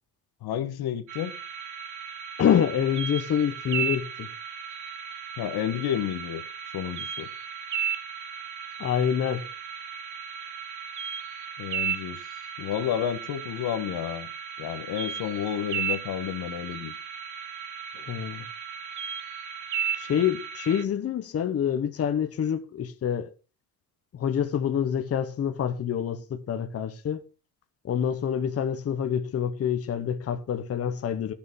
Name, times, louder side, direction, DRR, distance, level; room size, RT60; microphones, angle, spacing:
voice 1, 0.4-1.4 5.4-6.4 6.7-7.3 11.6-12.2 12.6-14.3 14.6-16.9, left 10 dB, 80° left, 1.4 m, -30 dB
sound 1, 1.1-20.8, right 8 dB, 50° right, 1.2 m, -35 dB
voice 2, 2.4-4.3 8.8-9.4 17.9-18.4 20.0-23.3 24.1-27.2 27.8-31.3, left 8 dB, 40° left, 1.1 m, -27 dB
13.0 x 7.0 x 5.3 m
cardioid pair, 160°, 37 cm